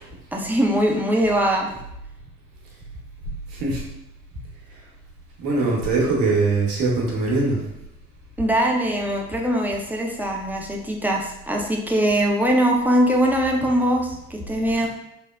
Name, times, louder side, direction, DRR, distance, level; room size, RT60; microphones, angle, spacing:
voice 1, 0.3-1.7 8.4-14.9, equal, 5° right, -1 dB, 0.5 m, -21 dB
voice 2, 5.4-7.6, right 3 dB, 70° right, -3 dB, 0.9 m, -21 dB
3.5 x 2.0 x 2.2 m, 0.83 s
hypercardioid pair, 50°, 36 cm